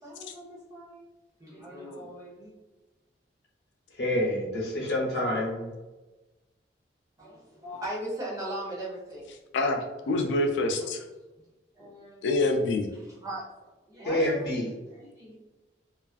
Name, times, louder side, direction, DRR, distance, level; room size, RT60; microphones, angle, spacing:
voice 1, 0.0-1.0 1.4-2.5 7.2-9.3 10.1-10.2 11.8-12.5 12.9-15.4, right 1 dB, 20° right, -5 dB, 0.6 m, -39 dB
voice 2, 4.0-5.7 14.0-14.7, left 1 dB, 65° left, -2 dB, 0.7 m, -27 dB
voice 3, 9.5-11.0 12.2-12.9, left 2 dB, 85° left, 4 dB, 0.3 m, -26 dB
2.4 x 2.3 x 2.3 m, 1.1 s
head